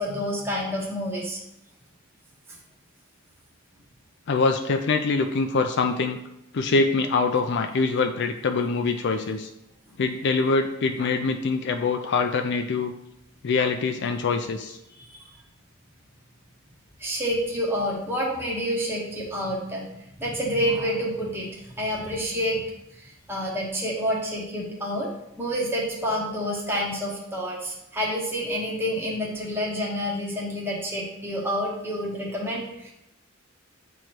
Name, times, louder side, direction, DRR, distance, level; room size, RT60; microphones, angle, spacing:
voice 1, 0.0-1.4 15.0-15.3 17.0-19.8 20.2-22.6 23.0-25.1 25.4-32.9, equal, 10° right, -5 dB, 1.1 m, -28 dB
voice 2, 4.3-6.2 6.5-9.5 10.0-12.9 13.4-14.8, left 4 dB, 55° left, 6 dB, 0.4 m, -24 dB
7.9 x 3.1 x 4.4 m, 0.84 s
head